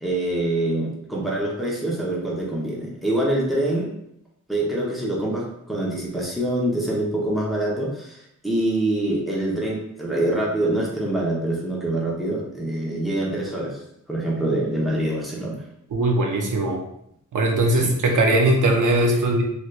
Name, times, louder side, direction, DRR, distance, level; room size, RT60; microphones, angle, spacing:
voice 1, 0.0-3.9 4.5-13.8 14.1-15.6 17.7-17.9, right 1 dB, ahead, -5 dB, 0.9 m, -25 dB
voice 2, 15.9-16.8 17.3-19.4, right 2 dB, 80° right, 2 dB, 0.6 m, -20 dB
3.3 x 2.9 x 2.4 m, 0.75 s
wide cardioid pair, 95°, 30 cm